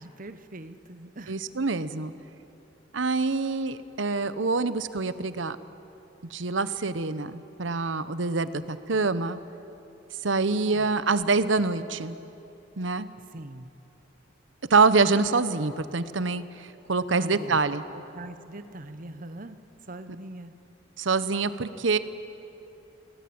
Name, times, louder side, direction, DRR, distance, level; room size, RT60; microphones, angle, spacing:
voice 1, 0.0-1.3 10.7-10.9 13.3-13.7 17.1-17.6 17.9-19.6 19.9-20.5, right 1 dB, 45° right, 10 dB, 1.0 m, -42 dB
voice 2, 1.3-2.1 2.9-5.6 6.3-9.4 10.2-12.2 12.8-13.1 14.7-17.8 21.0-22.0, right 4 dB, 80° right, 13 dB, 1.0 m, -25 dB
28.5 x 18.5 x 8.7 m, 2.9 s
head